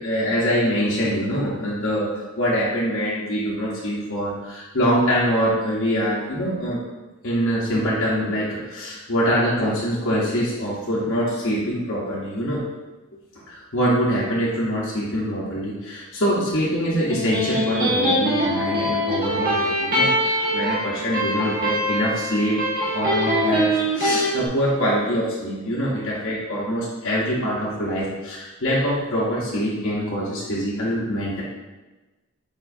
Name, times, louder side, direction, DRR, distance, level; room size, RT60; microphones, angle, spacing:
voice 1, 0.0-6.8 7.2-12.6 13.5-22.6 22.9-31.4, equal, 65° left, -8 dB, 0.8 m, -24 dB
Electric guitar, 16.9-24.3, equal, 45° right, 1.2 m, -23 dB
4.8 x 4.4 x 2.5 m, 1.2 s
head